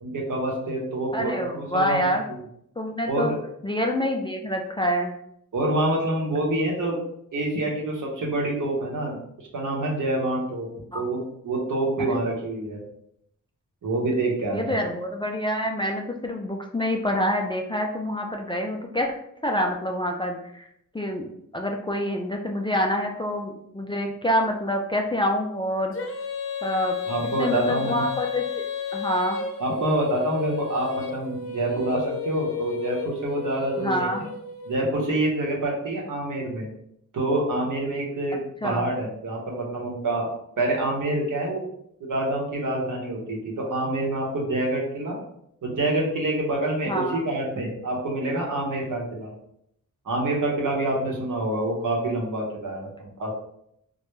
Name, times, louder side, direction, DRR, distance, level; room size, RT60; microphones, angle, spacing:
voice 1, 0.0-2.1 3.0-3.4 5.5-7.0 7.3-10.7 10.9-12.8 13.8-14.8 27.1-28.0 29.6-34.3 34.7-36.7 37.1-40.3 40.6-41.6 42.0-45.2 45.6-49.3 50.1-53.3, right 1 dB, 65° right, -2 dB, 0.9 m, -27 dB
voice 2, 1.1-2.3 2.8-3.3 3.6-5.1 10.9-11.1 14.5-19.1 19.4-20.7 20.9-21.3 21.5-25.9 26.6-27.0 27.4-29.4 33.8-34.2 38.6-38.9 46.9-47.2, equal, 15° left, 1 dB, 0.3 m, -26 dB
Female singing, 25.9-34.7, left 6 dB, 40° left, 0.7 m, -33 dB
2.2 x 2.1 x 3.0 m, 0.74 s
cardioid pair, 40°, 34 cm